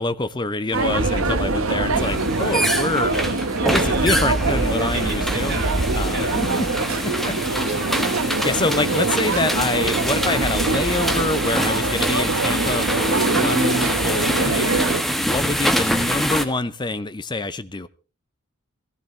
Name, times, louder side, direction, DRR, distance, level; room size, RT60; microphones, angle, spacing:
voice 1, 0.0-3.1 3.7-5.6 5.9-6.5 8.4-14.7 15.0-17.9, left 2 dB, 20° left, 0.6 m, -26 dB
sound 1, 0.7-15.0, right 3 dB, 70° right, 1.2 m, -23 dB
sound 2, 1.9-16.5, equal, ahead, 1.3 m, -25 dB
voice 2, 3.0-4.2 4.9-8.5, right 2 dB, 50° right, 5.0 m, -34 dB
17.5 x 15.0 x 3.3 m
head